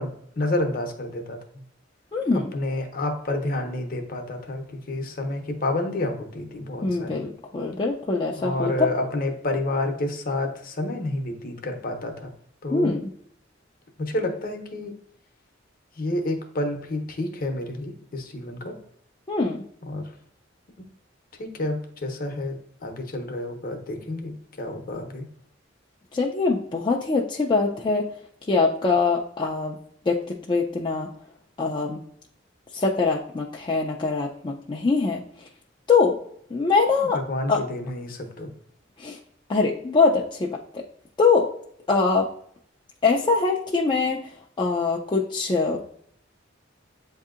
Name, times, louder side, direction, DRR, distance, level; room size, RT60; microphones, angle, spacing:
voice 1, 0.0-1.4 2.5-7.3 8.4-12.3 12.6-12.9 14.0-14.9 16.0-18.7 19.8-20.1 21.4-25.3 37.0-38.5, left 1 dB, 50° left, 4 dB, 0.7 m, -29 dB
voice 2, 2.1-2.5 6.8-8.7 12.7-13.1 19.3-19.6 26.1-28.1 28.5-29.8 30.1-31.1 31.6-32.0 32.7-35.2 35.9-36.2 36.5-37.2 37.5-37.6 39.0-39.2 39.5-40.8 41.2-41.5 41.9-42.3 43.0-45.8, left 4 dB, 25° left, -1 dB, 0.4 m, -23 dB
8.0 x 2.7 x 2.4 m, 0.67 s
head